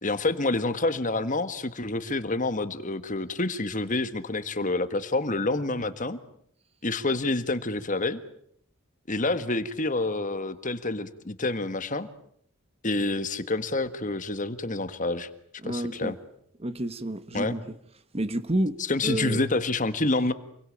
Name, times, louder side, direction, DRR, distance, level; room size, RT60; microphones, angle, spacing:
voice 1, 0.0-6.2 6.8-8.2 9.1-12.1 12.8-15.3 15.6-16.1 17.3-17.5 18.9-20.3, left 2 dB, 35° left, 1.6 m, -28 dB
voice 2, 15.6-16.1 16.6-17.8 18.1-19.4, right 1 dB, 30° right, 1.3 m, -30 dB
28.5 x 22.5 x 8.8 m
head